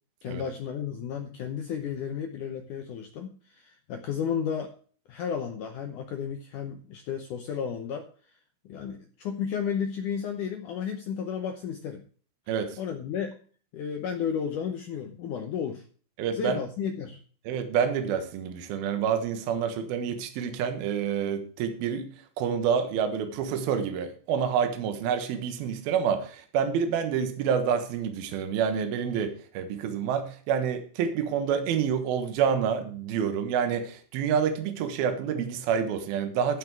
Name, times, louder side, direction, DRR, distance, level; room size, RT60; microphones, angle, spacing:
voice 1, 0.2-4.7 5.1-8.1 8.6-12.0 12.8-13.4 13.7-15.8 16.3-17.2, left 7 dB, 80° left, 5 dB, 1.8 m, -33 dB
voice 2, 12.5-12.8 16.2-16.6 17.5-22.1 22.4-36.6, right 7 dB, 70° right, 8 dB, 2.9 m, -28 dB
15.0 x 5.9 x 4.7 m, 0.43 s
omnidirectional pair, 5.0 m